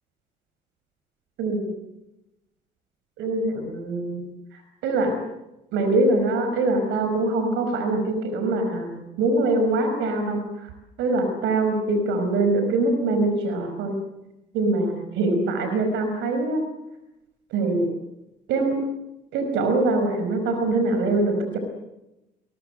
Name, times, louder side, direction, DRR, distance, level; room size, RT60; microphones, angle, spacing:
voice 1, 1.4-1.7 3.2-4.2 4.5-5.1 5.7-10.7 11.0-14.0 14.5-16.6 17.5-17.9 18.5-18.8 19.3-21.6, right 2 dB, 75° right, 7 dB, 4.9 m, -23 dB
29.0 x 21.5 x 7.9 m, 0.94 s
hypercardioid pair, 50°, 19 cm